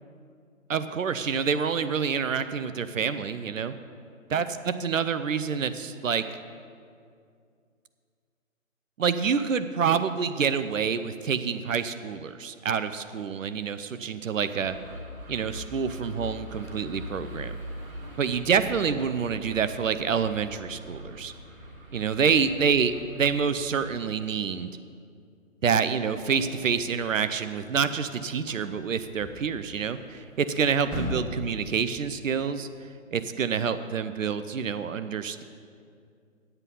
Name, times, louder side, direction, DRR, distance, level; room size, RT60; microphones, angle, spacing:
voice 1, 0.7-3.7 4.3-6.2 9.0-14.7 15.3-17.5 18.2-21.3 21.9-24.7 25.6-32.7 33.1-35.4, right 6 dB, 70° right, 11 dB, 0.7 m, -27 dB
sound 1, 14.5-23.9, left 1 dB, 85° right, 2.4 m, -42 dB
sound 2, 26.1-32.0, left 1 dB, ahead, 1.1 m, -40 dB
9.6 x 8.1 x 5.5 m, 2.3 s
figure-of-eight pair, 150°, 40 cm